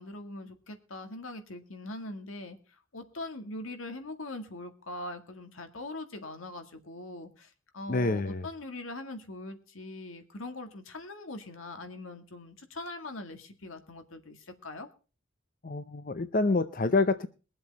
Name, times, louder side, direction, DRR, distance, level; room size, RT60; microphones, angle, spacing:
voice 1, 0.0-2.6 2.9-14.9, left 2 dB, 90° left, 7 dB, 2.0 m, -42 dB
voice 2, 7.9-8.5 15.6-17.3, left 3 dB, 45° left, 11 dB, 0.7 m, -27 dB
22.5 x 7.7 x 4.2 m, 0.34 s
head